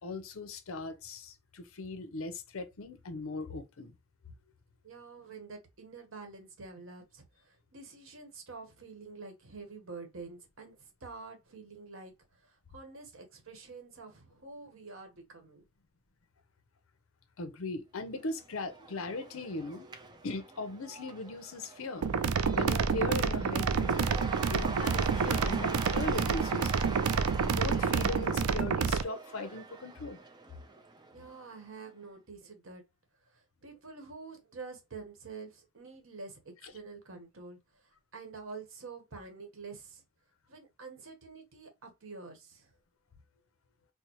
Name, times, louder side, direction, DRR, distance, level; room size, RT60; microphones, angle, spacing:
voice 1, 0.0-4.0 17.4-19.9 20.2-22.0 22.5-24.2 24.5-27.0 27.4-30.2, left 2 dB, 70° left, 0.6 m, -39 dB
voice 2, 4.8-15.6 31.1-32.8 33.2-40.0 40.5-42.7, right 4 dB, 65° right, 1.1 m, -48 dB
Cheering / Applause / Crowd, 18.2-31.6, right 3 dB, 20° right, 0.5 m, -44 dB
sound 1, 22.0-29.0, right 5 dB, 85° right, 0.4 m, -28 dB
4.4 x 2.1 x 2.9 m
head